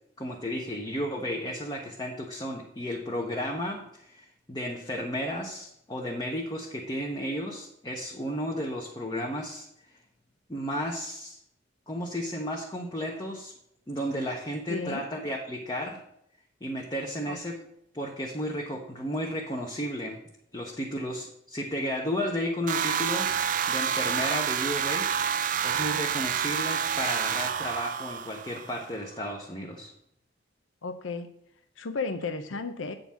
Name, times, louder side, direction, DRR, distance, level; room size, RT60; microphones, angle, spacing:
voice 1, 0.2-9.7 10.5-11.4 11.9-13.5 13.9-16.0 16.6-17.6 17.9-20.2 20.5-23.3 23.7-25.1 25.6-29.9, equal, 20° left, -1 dB, 0.8 m, -33 dB
voice 2, 14.7-15.0 17.2-17.4 30.8-31.3 31.8-32.9, left 4 dB, 90° left, 9 dB, 0.7 m, -33 dB
sound 1, 22.7-28.8, right 8 dB, 40° right, 0.3 m, -28 dB
8.5 x 3.9 x 7.1 m, 0.76 s
head